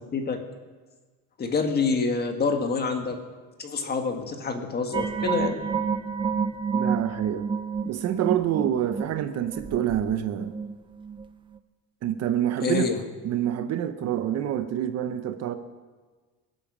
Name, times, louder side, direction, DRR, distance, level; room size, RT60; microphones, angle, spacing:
voice 1, 1.4-3.2 3.6-5.6 12.6-13.0, left 4 dB, 25° left, 5 dB, 1.6 m, -27 dB
sound 1, 4.9-11.3 11.6-11.7, right 6 dB, 15° right, 0.4 m, -30 dB
voice 2, 6.7-7.5 7.8-10.5 12.0-12.9 13.2-15.6, right 11 dB, 45° right, 9 dB, 0.8 m, -27 dB
21.5 x 8.8 x 6.1 m, 1.4 s
cardioid pair, 155°, 35 cm